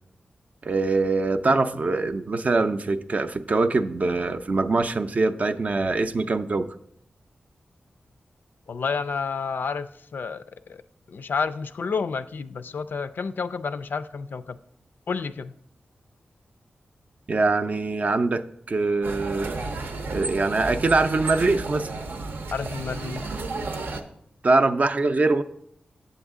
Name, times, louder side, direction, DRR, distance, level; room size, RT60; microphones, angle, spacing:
voice 1, 0.6-6.7 17.3-18.4 18.7-19.6 20.1-21.9 24.4-25.4, right 3 dB, 45° right, 0.4 m, -23 dB
voice 2, 8.7-10.8 11.1-14.6 15.1-15.5 22.5-23.3, left 5 dB, 70° left, 0.3 m, -30 dB
sound 1, 19.0-24.0, right 3 dB, 80° right, 0.7 m, -32 dB
8.0 x 7.0 x 3.6 m
wide cardioid pair, 80°, 3 cm